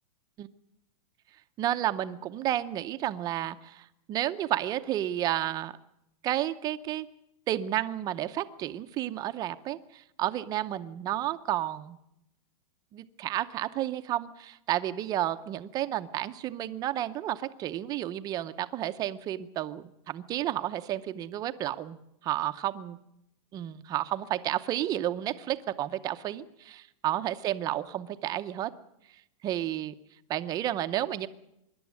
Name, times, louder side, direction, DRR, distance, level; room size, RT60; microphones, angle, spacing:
voice 1, 1.6-5.7 6.2-7.1 7.5-12.0 12.9-22.0 22.2-23.0 23.5-28.7 29.4-29.9 30.3-31.3, right 13 dB, 20° right, 10 dB, 0.7 m, -31 dB
25.0 x 11.5 x 9.5 m, 0.83 s
supercardioid pair, 165°, 19 cm